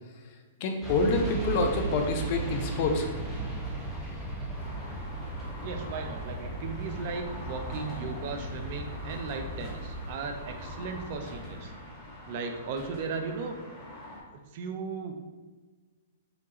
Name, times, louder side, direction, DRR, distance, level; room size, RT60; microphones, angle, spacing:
voice 1, 0.6-3.1, left 3 dB, 50° left, 4 dB, 0.6 m, -27 dB
sound 1, 0.8-11.6, right 2 dB, 10° right, 0.9 m, -37 dB
sound 2, 4.5-14.2, left 1 dB, 10° left, 1.3 m, -44 dB
voice 2, 5.6-11.7 12.3-13.6 14.5-15.2, right 4 dB, 50° right, 5 dB, 0.5 m, -36 dB
5.0 x 2.4 x 2.9 m, 1.3 s
hypercardioid pair, 120°, 0 cm